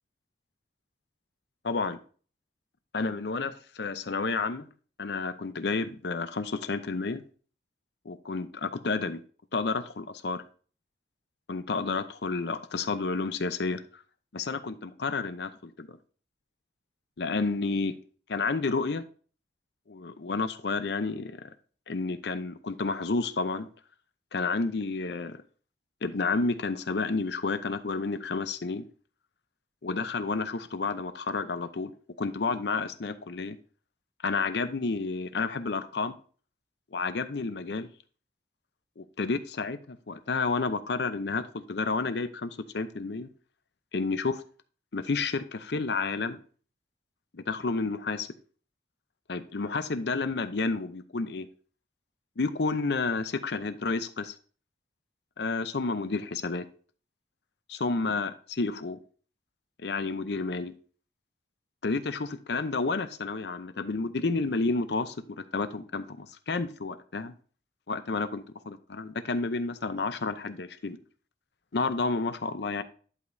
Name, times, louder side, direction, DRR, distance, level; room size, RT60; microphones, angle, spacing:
voice 1, 1.6-2.0 2.9-4.7 5.0-7.2 8.0-9.2 9.5-10.4 11.5-14.0 14.3-16.0 17.2-17.9 18.3-19.0 19.9-21.5 21.9-23.7 24.3-25.4 26.0-28.8 29.8-31.9 32.2-33.6 34.2-36.1 36.9-37.9 39.0-43.3 43.9-44.4 44.9-46.4 47.3-48.3 49.3-51.5 52.4-54.3 55.4-56.7 57.7-59.0 59.8-60.7 61.8-67.3 67.9-71.0 71.7-72.8, left 3 dB, 70° left, 12 dB, 0.6 m, -30 dB
11.0 x 5.1 x 2.7 m, 0.41 s
head